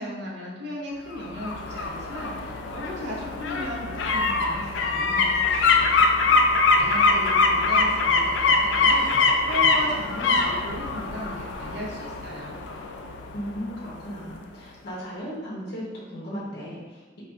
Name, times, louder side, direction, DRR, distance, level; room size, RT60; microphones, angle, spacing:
voice 1, 0.0-6.1 6.7-12.6, equal, 60° right, -4 dB, 0.8 m, -36 dB
sound 1, 1.1-13.9 14.3-14.4, left 3 dB, 75° left, 0.3 m, -23 dB
voice 2, 13.3-17.2, equal, 55° left, -5 dB, 0.7 m, -36 dB
4.2 x 2.4 x 2.3 m, 1.2 s
head